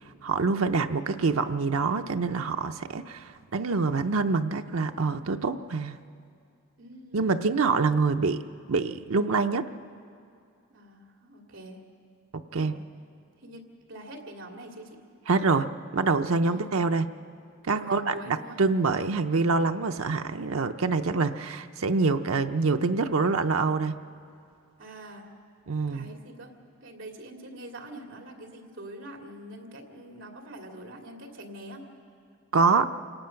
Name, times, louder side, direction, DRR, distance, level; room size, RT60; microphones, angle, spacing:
voice 1, 0.2-6.0 7.1-8.4 8.7-9.6 12.5-12.7 15.3-17.1 17.7-24.0 25.7-26.1 32.5-32.9, right 4 dB, 90° right, 7 dB, 0.6 m, -25 dB
voice 2, 6.8-7.3 10.7-11.8 12.5-12.9 13.4-15.0 16.4-16.7 17.7-18.6 24.8-25.3 25.9-26.5 26.8-31.9, right 1 dB, 70° right, 2 dB, 2.5 m, -44 dB
28.0 x 18.5 x 5.8 m, 2.4 s
head